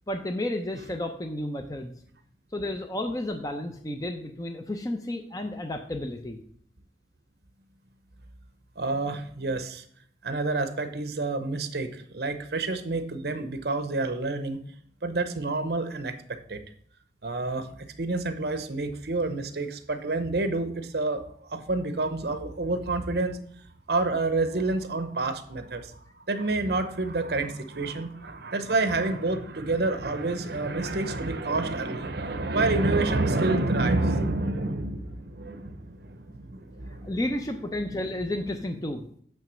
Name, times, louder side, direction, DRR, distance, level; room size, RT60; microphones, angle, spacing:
voice 1, 0.1-1.9 2.5-6.4 37.0-39.0, left 1 dB, 20° left, 5 dB, 0.6 m, -32 dB
voice 2, 8.8-9.8 10.2-14.7 15.0-16.2 16.5-16.6 17.2-23.4 23.9-26.0 26.3-37.2, right 2 dB, 65° right, 9 dB, 0.8 m, -28 dB
9.0 x 3.3 x 6.2 m, 0.62 s
head